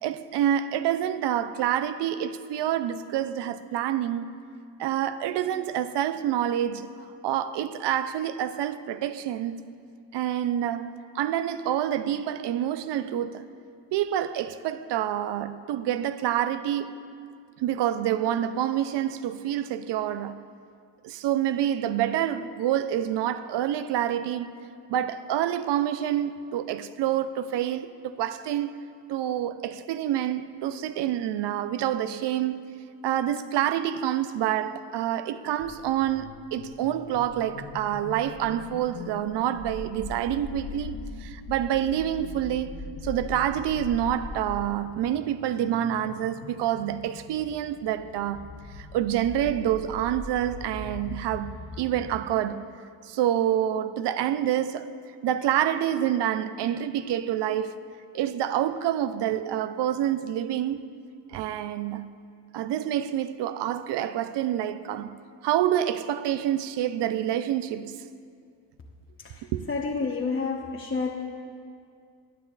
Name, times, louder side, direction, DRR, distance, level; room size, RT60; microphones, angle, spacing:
voice 1, 0.0-4.3 4.8-6.9 7.2-9.7 10.1-13.5 13.9-17.0 17.6-20.4 21.0-24.6 24.9-28.7 29.1-32.6 33.0-42.7 43.0-48.5 48.7-52.6 53.0-54.9 55.2-57.7 58.1-60.8 61.3-62.1 62.5-65.2 65.4-68.0 69.5-69.6, right 11 dB, 60° right, 0.6 m, -27 dB
sound 1, 35.6-52.2, left 3 dB, 45° left, 1.2 m, -41 dB
voice 2, 69.7-71.1, left 4 dB, 25° left, 1.0 m, -29 dB
17.5 x 9.7 x 2.5 m
supercardioid pair, 65°, 49 cm